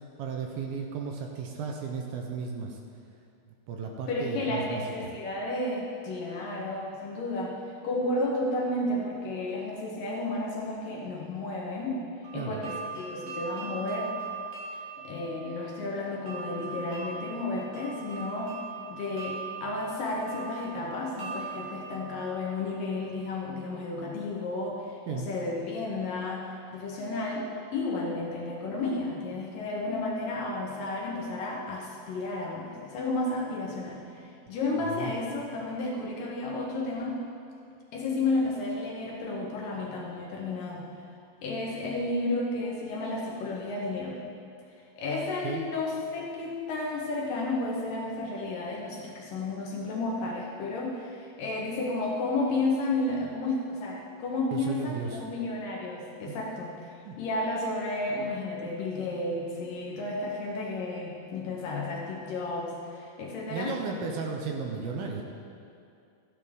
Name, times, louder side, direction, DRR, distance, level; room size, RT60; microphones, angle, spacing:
voice 1, 0.2-2.8 3.7-4.8 12.3-12.6 25.1-25.3 35.0-35.2 45.4-45.7 54.5-55.3 56.2-56.4 57.1-57.2 63.5-65.2, right 5 dB, 75° right, 1 dB, 2.5 m, -34 dB
voice 2, 4.1-7.6 7.8-12.0 12.3-14.1 15.0-18.5 18.9-27.5 27.7-37.2 37.9-40.9 41.4-44.2 45.0-56.7 57.2-63.7, left 2 dB, 65° left, -3 dB, 2.5 m, -32 dB
sound 1, 12.2-23.1, right 5 dB, 50° right, 2.8 m, -41 dB
14.0 x 10.5 x 3.6 m, 2.4 s
omnidirectional pair, 4.7 m